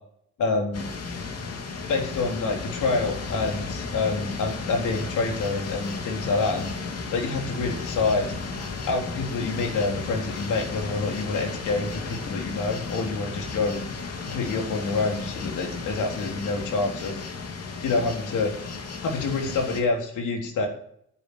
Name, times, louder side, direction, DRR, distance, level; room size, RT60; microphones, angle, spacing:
voice 1, 0.4-0.9 1.9-6.7 7.1-8.3 8.8-13.8 14.3-17.2 17.8-18.5 19.0-20.7, left 3 dB, 80° left, 1 dB, 3.8 m, -27 dB
sound 1, 0.7-19.8, left 4 dB, 55° left, 2.8 m, -34 dB
10.0 x 10.0 x 8.7 m, 0.68 s
cardioid pair, 90°, 30 cm